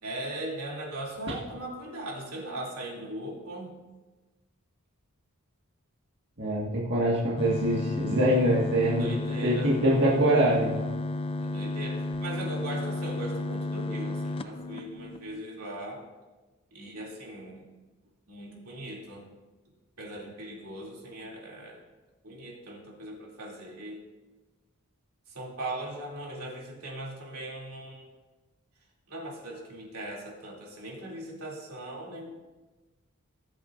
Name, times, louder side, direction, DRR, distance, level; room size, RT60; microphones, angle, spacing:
voice 1, 0.0-3.7 9.0-9.7 11.4-16.1 16.7-17.6 18.3-19.2 20.0-21.8 22.2-24.0 25.3-28.1 29.1-32.3, right 1 dB, 90° right, -3 dB, 2.9 m, -39 dB
voice 2, 6.4-9.1 9.4-10.8, right 1 dB, 55° right, -5 dB, 1.8 m, -24 dB
sound 1, 7.4-15.4, left 2 dB, 25° left, 0.4 m, -33 dB
19.5 x 8.0 x 2.6 m, 1.2 s
head